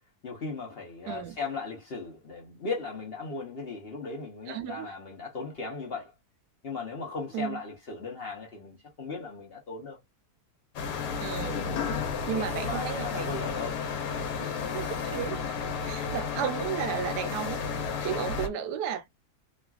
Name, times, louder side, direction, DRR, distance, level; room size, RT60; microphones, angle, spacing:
voice 1, 0.2-6.1 6.6-10.0 12.3-13.8 16.0-16.1, left 4 dB, 50° left, 0.7 m, -37 dB
voice 2, 1.1-1.4 4.5-4.9 7.3-7.6 11.2-11.7 12.3-13.3 14.4-15.4 15.8-17.6 18.0-19.1, right 10 dB, 85° right, 1.2 m, -34 dB
sound 1, 10.8-18.5, left 5 dB, 80° left, 1.2 m, -32 dB
3.1 x 2.4 x 2.2 m
omnidirectional pair, 1.7 m